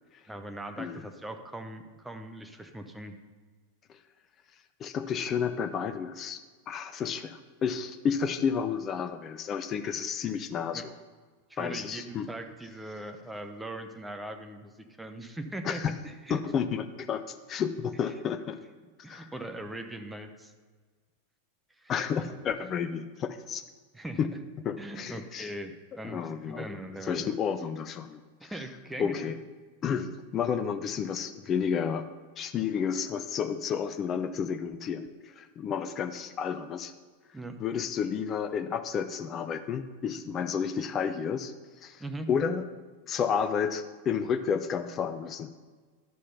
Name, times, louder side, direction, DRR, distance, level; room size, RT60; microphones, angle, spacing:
voice 1, 0.3-3.2 10.7-10.9 11.5-16.4 19.0-20.5 21.8-21.9 22.3-22.4 23.9-24.2 24.8-27.3 28.4-29.2 37.3-37.6 42.0-42.3, right 1 dB, 5° right, 6 dB, 0.8 m, -40 dB
voice 2, 4.8-6.4 6.7-10.9 11.6-12.3 15.6-15.9 16.3-18.6 19.1-19.3 21.9-23.6 24.2-24.3 24.6-25.5 26.0-28.5 29.0-29.4 29.8-32.0 32.4-36.9 37.6-42.7 43.1-45.5, left 7 dB, 30° left, 10 dB, 0.5 m, -31 dB
11.0 x 6.4 x 5.5 m, 1.5 s
figure-of-eight pair, 90°, 0 cm